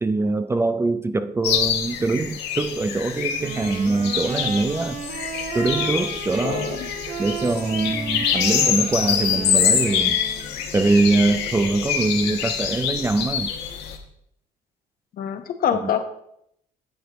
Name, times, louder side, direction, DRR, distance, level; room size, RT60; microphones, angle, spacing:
voice 1, 0.0-5.0 5.5-6.8 7.2-10.2 10.7-13.5 15.7-15.9, right 3 dB, 15° right, 11 dB, 0.3 m, -23 dB
sound 1, 1.4-14.0, left 8 dB, 80° left, 1.3 m, -25 dB
Wind instrument woodwind instrument, 3.4-10.6, right 6 dB, 55° right, 1.2 m, -34 dB
voice 2, 6.4-6.9 15.2-16.0, left 8 dB, 60° left, 7 dB, 1.1 m, -25 dB
9.4 x 7.9 x 3.0 m, 0.74 s
cardioid pair, 110°, 17 cm